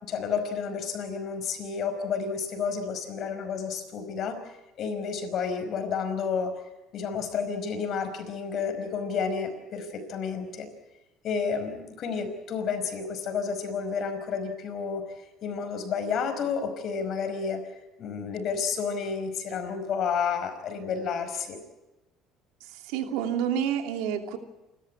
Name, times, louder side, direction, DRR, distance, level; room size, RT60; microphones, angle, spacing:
voice 1, 0.0-4.4 4.8-6.5 6.9-10.7 11.2-15.0 15.4-17.7 18.0-21.6, left 6 dB, 55° left, 8 dB, 5.1 m, -31 dB
voice 2, 22.7-24.4, right 9 dB, 90° right, 5 dB, 2.6 m, -29 dB
28.5 x 13.5 x 9.7 m, 1.0 s
supercardioid pair, 100°, 0 cm